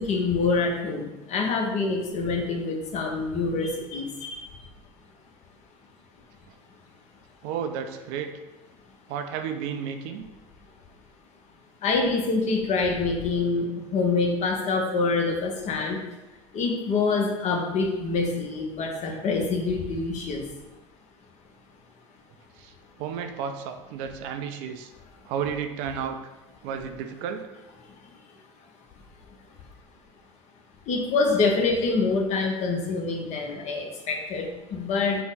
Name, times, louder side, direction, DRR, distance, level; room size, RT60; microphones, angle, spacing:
voice 1, 0.0-4.5 11.8-16.0 16.5-20.5 30.9-35.2, left 4 dB, 45° left, 2 dB, 0.7 m, -26 dB
voice 2, 7.4-8.3 9.1-10.3 22.6-22.7 23.0-24.9 25.2-26.2 26.6-27.5, right 7 dB, 60° right, 7 dB, 0.4 m, -32 dB
3.6 x 2.0 x 3.8 m, 1.1 s
hypercardioid pair, 70°, 17 cm